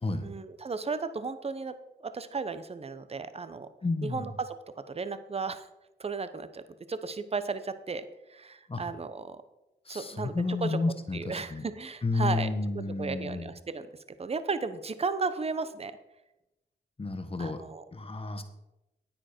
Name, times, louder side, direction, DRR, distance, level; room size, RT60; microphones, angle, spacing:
voice 1, 0.2-3.7 4.0-4.6 4.9-5.7 6.0-6.6 6.9-9.4 9.9-10.8 11.1-12.5 13.0-13.9 14.2-15.9 17.4-17.8, right 4 dB, 35° right, 12 dB, 0.8 m, -34 dB
voice 2, 3.8-4.3 8.7-8.9 9.9-11.6 12.0-13.4 17.0-17.6 17.9-18.4, left 3 dB, 30° left, 8 dB, 1.3 m, -31 dB
9.7 x 8.9 x 4.4 m, 0.95 s
cardioid pair, 65°, 18 cm